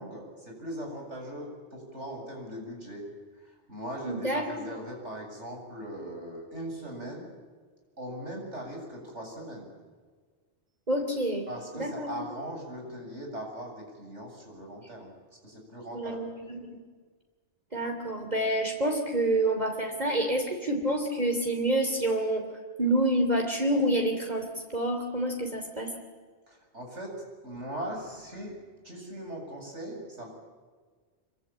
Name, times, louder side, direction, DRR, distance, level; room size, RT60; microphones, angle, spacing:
voice 1, 0.0-3.0 3.3-7.3 8.0-9.7 11.5-15.1 15.4-16.2 26.5-27.1 27.4-28.5 28.8-30.3, right 1 dB, 85° right, 1 dB, 8.2 m, -40 dB
voice 2, 4.0-4.7 10.9-11.5 11.7-12.2 15.9-16.8 17.7-22.4 22.8-24.4 24.7-25.9, right 1 dB, 35° right, 2 dB, 3.2 m, -28 dB
26.5 x 24.5 x 8.9 m, 1.5 s
omnidirectional pair, 1.2 m